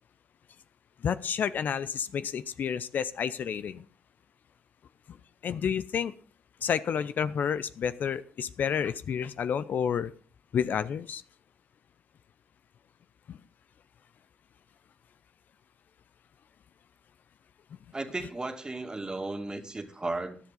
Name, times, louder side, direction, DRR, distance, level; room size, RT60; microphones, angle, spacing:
voice 1, 1.0-3.8 5.1-5.2 5.4-6.1 6.6-10.1 10.5-11.2 13.3-13.4, left 7 dB, 60° left, 14 dB, 0.6 m, -30 dB
voice 2, 17.9-20.4, right 2 dB, 25° right, 6 dB, 2.3 m, -35 dB
16.5 x 10.5 x 4.0 m, 0.41 s
hypercardioid pair, 45°, 3 cm